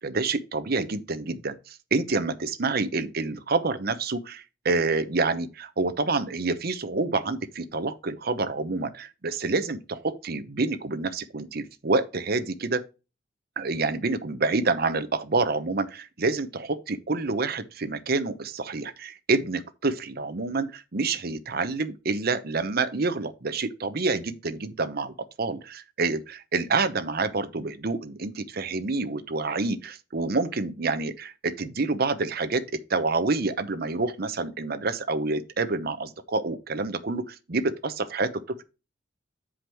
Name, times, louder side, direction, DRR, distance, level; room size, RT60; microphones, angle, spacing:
voice 1, 0.0-12.8 13.6-32.6 32.9-38.6, right 3 dB, 55° right, 0.8 m, -28 dB
7.9 x 5.0 x 4.5 m
head